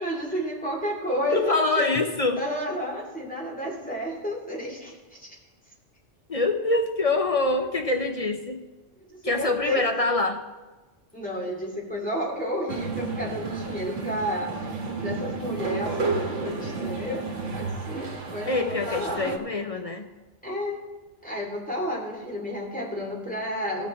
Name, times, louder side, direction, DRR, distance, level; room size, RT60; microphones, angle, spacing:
voice 1, 0.0-2.0 2.3-5.3 9.1-9.9 11.1-17.2 17.5-19.3 20.4-20.8 21.2-23.9, equal, 5° left, -3 dB, 2.5 m, -31 dB
voice 2, 1.3-2.4 6.3-8.6 9.2-10.4 18.5-20.1, left 2 dB, 40° left, 5 dB, 0.6 m, -25 dB
sound 1, 12.7-19.4, right 3 dB, 90° right, 1.4 m, -31 dB
17.0 x 6.0 x 4.2 m, 1.2 s
omnidirectional pair, 1.2 m